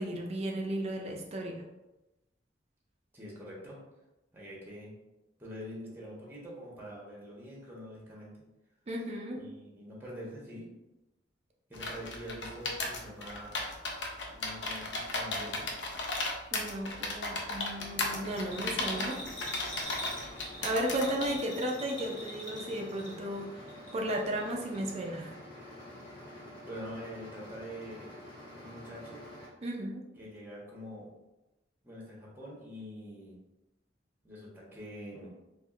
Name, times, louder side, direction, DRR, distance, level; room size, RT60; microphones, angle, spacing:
voice 1, 0.0-1.6 8.9-9.4 16.5-19.2 20.6-23.6 23.9-25.3 29.6-30.0, right 1 dB, 35° right, 1 dB, 0.4 m, -34 dB
voice 2, 3.1-3.8 4.3-4.9 5.4-8.3 9.4-10.7 11.7-13.6 14.3-15.7 21.1-21.2 26.6-28.1 28.6-29.2 30.2-31.1 31.8-33.4 34.2-35.3, equal, 10° right, -4 dB, 0.9 m, -45 dB
sound 1, 11.7-21.3, left 2 dB, 70° left, 0.6 m, -35 dB
sound 2, 17.7-29.5, left 1 dB, 25° left, 1.3 m, -48 dB
Bell, 18.3-23.4 23.7-24.5 24.7-24.8, left 1 dB, 85° left, 1.3 m, -43 dB
4.2 x 2.4 x 2.4 m, 0.99 s
head